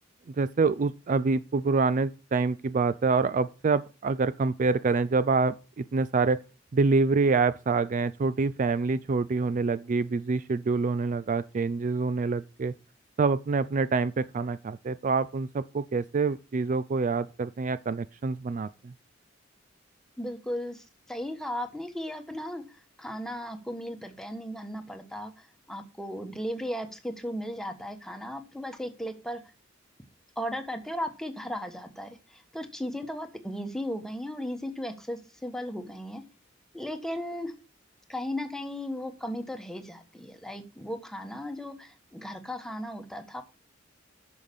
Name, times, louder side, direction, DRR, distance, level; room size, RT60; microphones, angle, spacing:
voice 1, 0.3-6.4 6.7-12.7 13.2-18.9, right 4 dB, 40° right, 0.4 m, -26 dB
voice 2, 20.2-29.4 30.4-36.2 36.7-37.5 38.1-43.4, equal, 5° left, 1.3 m, -36 dB
8.8 x 6.5 x 5.4 m
head